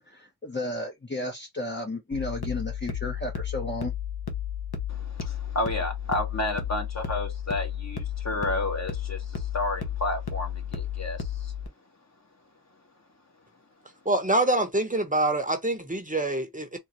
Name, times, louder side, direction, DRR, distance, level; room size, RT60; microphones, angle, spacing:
voice 1, 0.1-3.9, left 2 dB, 30° left, 0.8 m, -33 dB
sound 1, 2.1-11.7, left 9 dB, 80° left, 1.0 m, -33 dB
voice 2, 4.9-11.5, left 2 dB, 45° left, 1.3 m, -31 dB
voice 3, 14.1-16.8, right 2 dB, 20° right, 0.8 m, -25 dB
3.8 x 2.6 x 3.0 m
wide cardioid pair, 85°, 37 cm